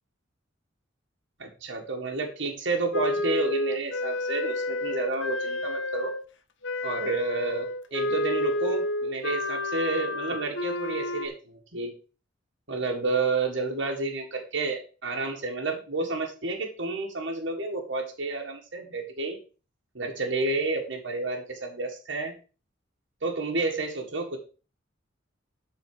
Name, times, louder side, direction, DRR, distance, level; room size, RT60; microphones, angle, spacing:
voice 1, 1.4-6.1 6.8-7.7 7.9-11.9 12.7-19.4 20.0-22.3 23.2-24.4, right 3 dB, 70° right, 0 dB, 1.7 m, -30 dB
Wind instrument woodwind instrument, 2.9-6.2 6.6-11.3, left 1 dB, 70° left, 1.0 m, -30 dB
12.5 x 4.4 x 4.8 m, 0.35 s
head